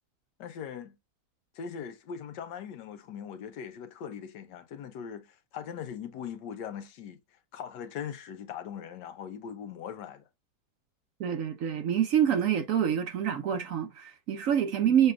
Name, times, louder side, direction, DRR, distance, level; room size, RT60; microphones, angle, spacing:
voice 1, 0.4-1.0 1.5-5.3 5.5-7.2 7.5-10.2 14.8-15.0, left 8 dB, 85° left, 1.4 m, -40 dB
voice 2, 11.2-15.1, right 9 dB, 65° right, 0.9 m, -26 dB
6.7 x 3.3 x 2.3 m
omnidirectional pair, 1.8 m